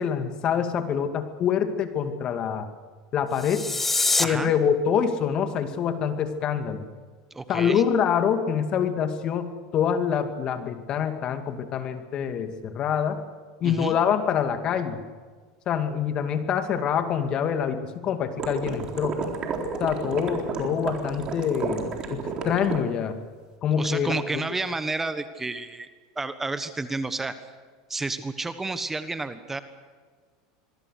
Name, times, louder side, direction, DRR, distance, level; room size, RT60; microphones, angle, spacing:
voice 1, 0.0-2.7 3.1-3.7 4.2-6.8 7.5-13.2 13.6-15.0 15.7-19.2 19.8-23.2 23.6-24.4, left 7 dB, 45° left, 7 dB, 2.4 m, -26 dB
sound 1, 3.3-4.2, left 3 dB, 10° left, 1.3 m, -24 dB
voice 2, 4.2-4.5 7.3-7.8 13.6-14.0 23.7-25.9 26.1-27.4 27.9-29.6, right 3 dB, 15° right, 11 dB, 1.3 m, -30 dB
sound 2, 18.4-22.8, right 5 dB, 40° right, 4.1 m, -31 dB
26.0 x 22.0 x 6.6 m, 1.5 s
hypercardioid pair, 100°, 2 cm